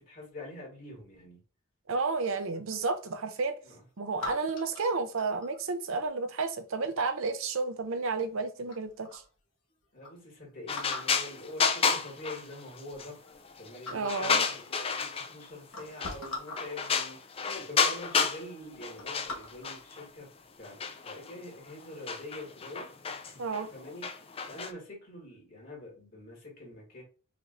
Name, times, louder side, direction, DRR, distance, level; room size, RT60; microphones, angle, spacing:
voice 1, 0.0-1.4 3.6-3.8 9.9-13.2 13.6-20.3 20.6-20.8 21.0-22.9 23.2-23.4 23.7-24.1 24.4-27.0, left 1 dB, 40° left, 2.4 m, -45 dB
voice 2, 1.9-3.6 4.0-9.2 13.9-14.4 23.4-23.7, right 4 dB, 70° right, 0.6 m, -31 dB
sound 1, 2.2-3.2 4.2-5.6 7.3-7.7 8.3-8.4 8.7-9.3 9.7-9.8 10.0-10.1 10.7-11.2 12.2-12.3 12.7-13.5 13.8-14.3 15.1-15.2 15.6-16.7 17.5-17.6 18.0-18.2 18.6-19.8 20.3-20.6, left 2 dB, 75° left, 1.2 m, -42 dB
sound 2, 10.7-13.1 13.5-15.5 16.0-16.3 16.6-18.4 18.7-20.0 20.6-24.7, left 5 dB, 25° left, 0.4 m, -30 dB
5.0 x 3.0 x 2.6 m
head